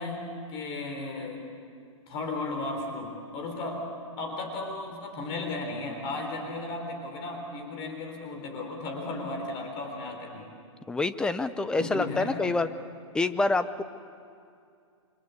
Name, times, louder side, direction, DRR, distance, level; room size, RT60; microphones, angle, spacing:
voice 1, 0.0-1.5 2.1-3.8 4.2-10.5 11.8-12.5, left 2 dB, 30° left, 3 dB, 3.9 m, -35 dB
voice 2, 10.9-12.7 13.1-13.8, left 3 dB, 5° left, 11 dB, 0.6 m, -27 dB
28.5 x 24.5 x 8.3 m, 2.4 s
hypercardioid pair, 155°, 17 cm